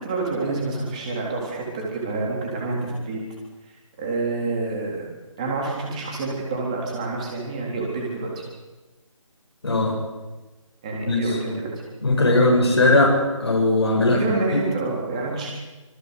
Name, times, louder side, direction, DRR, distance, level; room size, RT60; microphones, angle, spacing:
voice 1, 0.0-3.2 4.0-5.1 5.4-8.4 10.8-11.8 12.2-12.3 14.0-15.5, right 3 dB, 10° right, -1 dB, 3.7 m, -28 dB
voice 2, 9.6-10.0 11.1-11.2 12.0-13.1 13.4-14.2, left 2 dB, 50° left, -2 dB, 7.5 m, -18 dB
26.0 x 20.0 x 8.3 m, 1.1 s
figure-of-eight pair, 175°, 17 cm